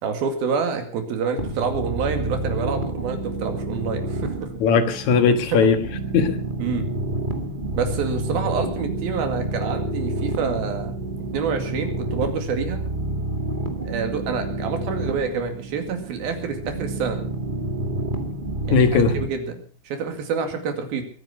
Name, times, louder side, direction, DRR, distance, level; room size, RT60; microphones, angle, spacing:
voice 1, 0.0-4.5 6.6-6.9 7.7-11.0 11.3-12.8 13.8-17.2 18.6-21.0, right 5 dB, 80° right, 6 dB, 4.1 m, -27 dB
sound 1, 1.4-19.3, right 2 dB, 25° right, 1.2 m, -29 dB
voice 2, 4.6-5.9 6.1-6.4 18.7-19.2, left 5 dB, 60° left, 9 dB, 2.5 m, -18 dB
22.0 x 9.3 x 6.1 m, 0.43 s
omnidirectional pair, 4.3 m